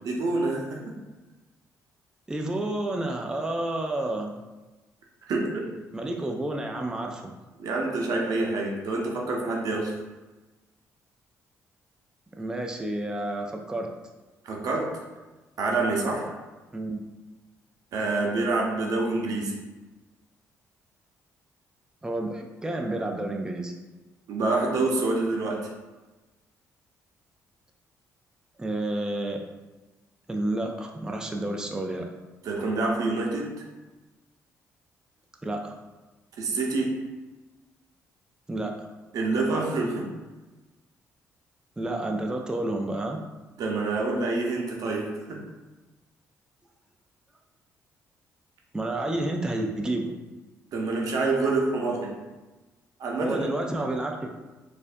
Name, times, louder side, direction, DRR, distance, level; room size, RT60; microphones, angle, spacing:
voice 1, 0.0-0.9 5.3-5.7 7.6-9.9 14.4-15.0 15.6-16.4 17.9-19.5 24.3-25.7 32.4-33.5 36.4-37.0 39.1-40.1 43.6-45.4 50.7-52.1 53.0-53.5, right 3 dB, 70° right, 0 dB, 0.7 m, -27 dB
voice 2, 2.3-4.3 5.9-7.3 12.4-13.9 16.7-17.0 22.0-23.7 28.6-29.4 30.3-32.1 35.4-35.8 38.5-38.7 41.8-43.2 48.7-50.1 53.2-54.4, right 1 dB, 10° right, 2 dB, 0.4 m, -30 dB
4.2 x 2.6 x 2.6 m, 1.2 s
cardioid pair, 75°, 6 cm